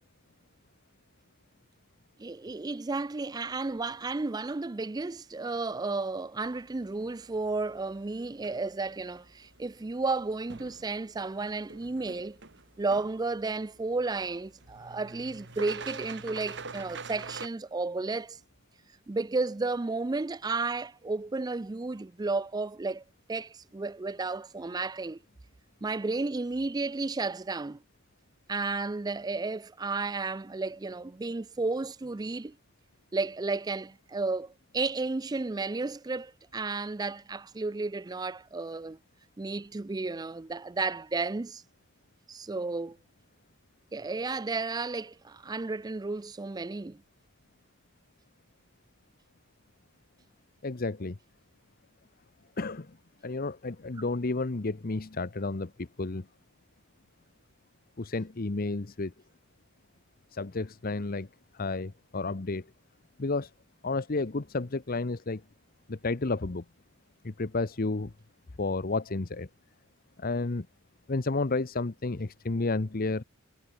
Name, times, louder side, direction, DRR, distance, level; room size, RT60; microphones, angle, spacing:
voice 1, 2.2-12.4 12.8-18.4 19.1-23.0 23.3-25.2 25.8-27.8 28.5-32.5 33.1-39.0 39.4-41.6 42.3-43.0 43.9-47.0, right 3 dB, 20° right, 0.4 m, -33 dB
sound 1, 6.4-17.5, right 4 dB, 55° right, 3.7 m, -47 dB
voice 2, 50.6-51.2 52.6-53.0 53.2-56.3 58.0-59.1 60.3-61.3 61.5-62.7 63.2-63.5 63.8-65.4 65.9-66.6 67.2-68.1 68.6-69.5 70.2-70.7 71.1-73.2, left 3 dB, 40° left, 0.8 m, -31 dB
head